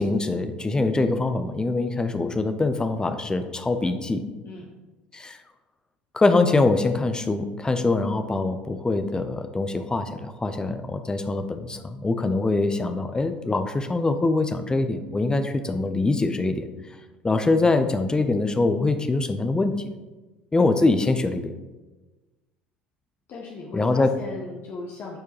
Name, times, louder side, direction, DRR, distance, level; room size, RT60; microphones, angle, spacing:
voice 1, 0.0-4.2 5.1-5.4 6.1-16.7 17.2-19.9 20.5-21.5 23.7-24.1, left 3 dB, 15° left, 8 dB, 0.7 m, -23 dB
voice 2, 23.3-25.2, left 3 dB, 45° left, -2 dB, 1.1 m, -37 dB
12.5 x 4.7 x 3.0 m, 1.2 s
figure-of-eight pair, 65°, 5 cm